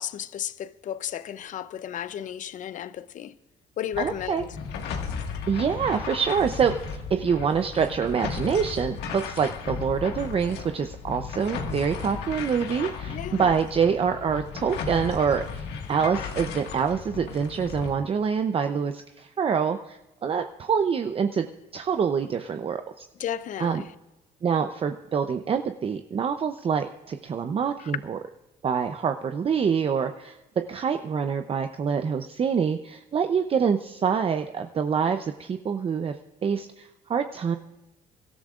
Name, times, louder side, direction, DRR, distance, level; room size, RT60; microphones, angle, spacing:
voice 1, 0.0-3.3 3.8-4.6 13.1-13.6 23.2-23.9 27.8-27.9, left 10 dB, 50° left, 0.6 m, -34 dB
sound 1, 3.9-17.9, left 6 dB, 80° left, 1.7 m, -35 dB
voice 2, 4.0-4.4 5.5-21.5 21.7-23.1 23.6-23.8 24.4-28.2 28.6-30.4 30.7-36.2 36.4-37.6, right 6 dB, 35° right, 0.7 m, -26 dB
25.0 x 13.0 x 2.5 m
cardioid pair, 110°, 17 cm